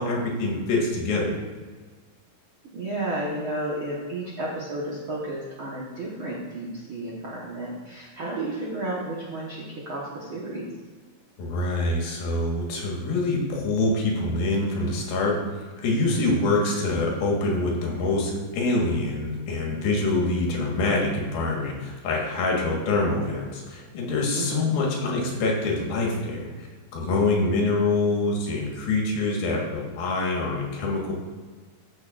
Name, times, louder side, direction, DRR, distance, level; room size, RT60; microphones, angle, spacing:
voice 1, 0.0-1.4 11.4-26.7 26.9-31.1, left 2 dB, 75° left, -2 dB, 3.3 m, -25 dB
voice 2, 2.7-10.7 24.4-24.7, right 1 dB, 65° right, -5 dB, 1.3 m, -32 dB
14.0 x 6.5 x 2.5 m, 1.5 s
omnidirectional pair, 4.3 m